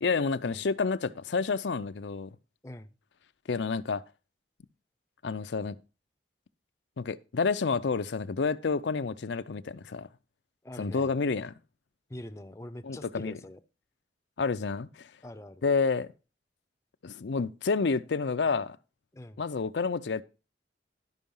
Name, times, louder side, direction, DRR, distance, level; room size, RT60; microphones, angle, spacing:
voice 1, 0.0-2.3 3.5-4.0 5.2-5.8 7.0-10.1 10.8-11.5 12.8-13.3 14.4-15.1 15.6-16.1 17.0-18.8 19.4-20.2, left 4 dB, 75° left, 0.5 m, -29 dB
voice 2, 2.6-2.9 10.6-11.2 12.1-13.6 15.2-15.6 19.1-19.4, left 1 dB, 15° left, 0.5 m, -44 dB
11.5 x 5.6 x 5.4 m
head